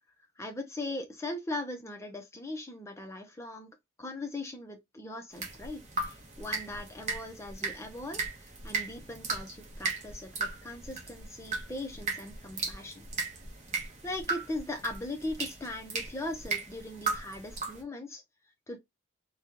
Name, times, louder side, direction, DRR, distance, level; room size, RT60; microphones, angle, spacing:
voice 1, 0.4-13.1 14.0-18.2 18.7-18.8, left 2 dB, 15° left, 0.6 m, -39 dB
sound 1, 5.3-17.8, right 3 dB, 35° right, 1.0 m, -37 dB
4.1 x 2.3 x 2.8 m
head